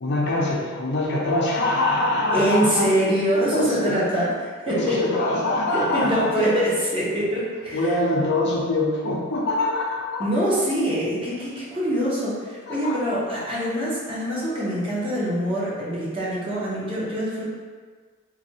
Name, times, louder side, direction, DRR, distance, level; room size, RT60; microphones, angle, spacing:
voice 1, 0.0-2.9 3.3-4.0 4.7-6.5 7.7-10.3 12.7-13.2, left 2 dB, 55° left, -3 dB, 0.5 m, -24 dB
voice 2, 2.3-4.3 4.7-5.0 5.7-7.9 10.2-17.4, right 1 dB, 25° right, -7 dB, 0.7 m, -24 dB
3.2 x 2.2 x 2.7 m, 1.6 s
head